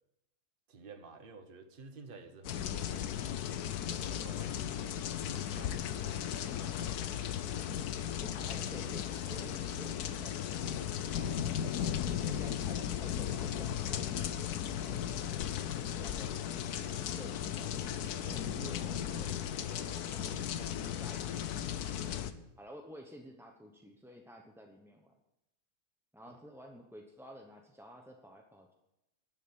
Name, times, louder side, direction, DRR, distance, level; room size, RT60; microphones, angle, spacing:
voice 1, 0.7-3.4 3.9-5.0 5.5-6.5 11.2-12.4 19.8-20.0 22.2-22.4 26.3-26.4, right 4 dB, 35° right, 6 dB, 1.3 m, -53 dB
sound 1, 2.4-22.3, left 9 dB, 75° left, 1.3 m, -36 dB
voice 2, 8.2-10.9 12.3-15.0 15.5-16.4 17.2-21.7 22.6-25.1 26.1-28.7, equal, ahead, 2 dB, 0.7 m, -52 dB
12.5 x 7.4 x 8.7 m, 0.91 s
omnidirectional pair, 1.7 m